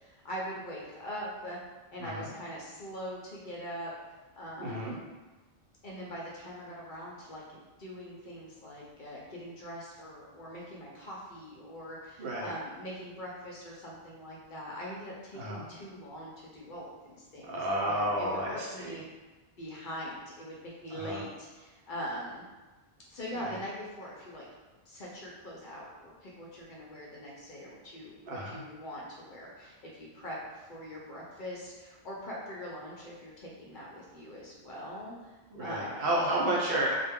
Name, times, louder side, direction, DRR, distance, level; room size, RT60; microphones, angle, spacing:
voice 1, 0.0-1.6 1.9-3.9 4.4-5.0 5.8-19.1 19.6-22.4 23.1-24.4 24.9-35.3 35.6-36.0, equal, 55° left, -5 dB, 0.7 m, -42 dB
voice 2, 2.0-2.3 4.6-5.0 12.2-12.5 15.3-15.7 17.4-19.0 20.9-21.2 23.3-23.6 28.2-28.6 35.5-37.0, right 1 dB, 65° right, -4 dB, 0.8 m, -31 dB
2.2 x 2.1 x 3.4 m, 1.2 s
omnidirectional pair, 1.1 m